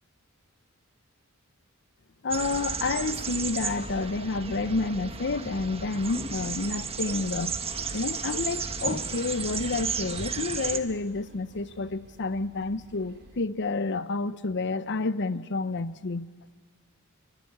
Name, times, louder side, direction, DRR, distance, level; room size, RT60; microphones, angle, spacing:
voice 1, 2.2-7.6 7.9-16.3, left 3 dB, 55° left, 0.7 m, -29 dB
sound 1, 2.3-10.8, right 5 dB, 25° right, 1.4 m, -33 dB
Laughter, 7.7-13.4, right 1 dB, 55° right, 4.5 m, -51 dB
27.5 x 23.5 x 8.6 m
head